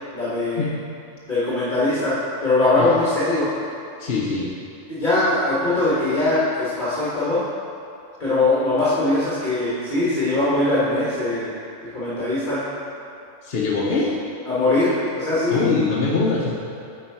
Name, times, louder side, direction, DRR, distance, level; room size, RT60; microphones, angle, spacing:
voice 1, 0.1-0.7 1.3-2.1 2.4-3.5 4.9-7.4 8.2-11.5 11.8-12.6 14.5-15.8, left 2 dB, 35° left, -11 dB, 1.5 m, -21 dB
voice 2, 4.0-4.5 13.4-14.1 15.5-16.5, left 3 dB, 50° left, -5 dB, 0.9 m, -22 dB
8.2 x 4.6 x 4.6 m, 2.5 s
omnidirectional pair, 1.4 m